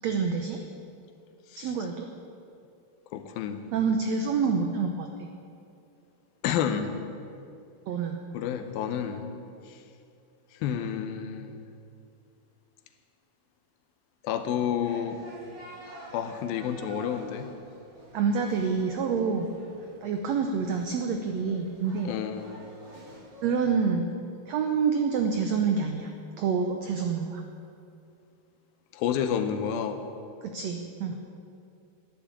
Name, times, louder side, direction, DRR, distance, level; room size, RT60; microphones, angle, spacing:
voice 1, 0.0-0.6 1.5-2.1 3.7-5.3 7.9-8.2 18.1-19.5 20.0-22.1 23.4-24.1 24.5-26.1 26.4-27.4 30.4-31.2, right 5 dB, 85° right, 5 dB, 1.5 m, -27 dB
voice 2, 3.1-3.6 6.4-6.9 8.3-9.3 9.7-9.8 10.6-11.7 14.2-15.2 16.1-17.5 22.1-22.5 28.9-30.0, left 8 dB, 90° left, 8 dB, 2.7 m, -30 dB
sound 1, 14.8-23.9, right 2 dB, 35° right, 4.6 m, -48 dB
11.5 x 10.5 x 8.4 m, 2.5 s
omnidirectional pair, 4.1 m